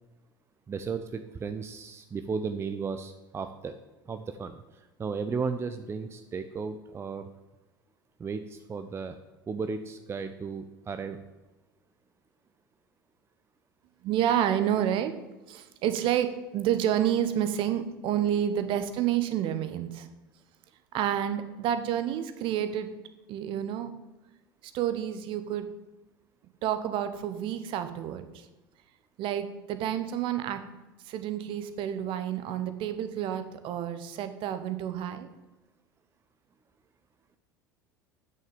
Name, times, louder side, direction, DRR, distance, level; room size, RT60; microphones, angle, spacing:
voice 1, 0.7-3.8 4.1-4.6 5.0-7.3 8.2-9.2 9.5-11.2, right 5 dB, 20° right, 9 dB, 0.7 m, -34 dB
voice 2, 14.0-15.1 15.5-20.1 20.9-22.9 23.3-23.9 24.7-25.7 26.6-28.5 29.2-30.6 31.1-35.3, right 10 dB, 50° right, 10 dB, 1.1 m, -29 dB
9.3 x 6.6 x 7.2 m, 1.1 s
figure-of-eight pair, 70°, 12 cm